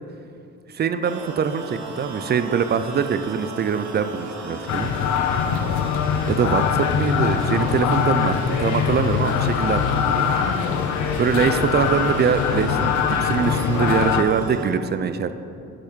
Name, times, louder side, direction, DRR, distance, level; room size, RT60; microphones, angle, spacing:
voice 1, 0.7-4.9 6.3-10.3 11.2-15.3, right 6 dB, 35° right, 11 dB, 0.4 m, -23 dB
sound 1, 1.0-14.7, right 3 dB, 65° right, 1.2 m, -36 dB
sound 2, 4.7-14.2, left 7 dB, 75° left, 0.6 m, -22 dB
6.5 x 5.6 x 5.0 m, 2.7 s
cardioid pair, 90°, 30 cm